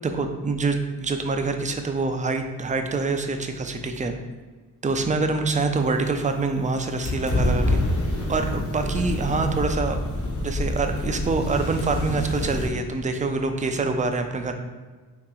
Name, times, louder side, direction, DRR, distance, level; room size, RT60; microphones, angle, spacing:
voice 1, 0.0-4.1 4.8-7.8 8.3-10.0 10.4-14.5, right 3 dB, 20° right, 6 dB, 0.4 m, -25 dB
sound 1, 7.0-12.7, left 1 dB, 50° left, 1.2 m, -26 dB
2.9 x 2.9 x 3.7 m, 1.3 s
supercardioid pair, 55°, 39 cm